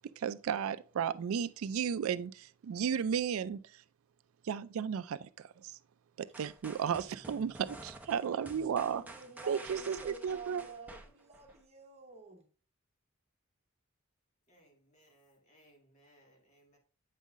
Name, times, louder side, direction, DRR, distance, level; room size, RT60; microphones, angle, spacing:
voice 1, 0.2-3.8 4.4-5.8 6.2-9.0 9.5-10.6, right 7 dB, 85° right, 0.4 m, -34 dB
sound 1, 6.3-11.6, right 2 dB, 10° right, 0.7 m, -50 dB
voice 2, 8.8-12.5, right 3 dB, 30° right, 1.1 m, -49 dB
voice 3, 14.5-16.8, right 1 dB, 35° left, 1.7 m, -65 dB
8.2 x 5.5 x 2.5 m
head